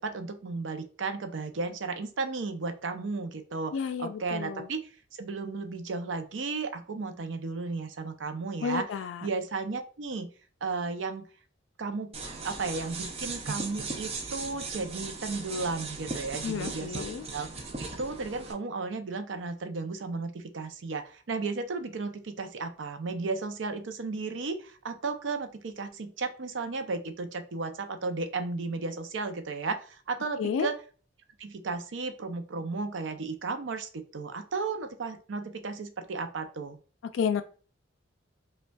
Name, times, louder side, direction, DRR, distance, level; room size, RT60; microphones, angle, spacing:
voice 1, 0.0-4.9 5.2-8.9 9.2-10.3 10.6-11.3 11.8-12.1 12.4-17.0 17.3-30.7 31.4-36.8, right 4 dB, 80° right, 7 dB, 0.5 m, -34 dB
voice 2, 3.7-4.7 8.6-9.3 16.4-17.2 30.4-30.7 37.1-37.4, left 6 dB, 90° left, 10 dB, 0.3 m, -31 dB
sound 1, 12.1-18.5, right 3 dB, 35° right, 0.5 m, -38 dB
5.0 x 2.3 x 2.3 m, 0.38 s
head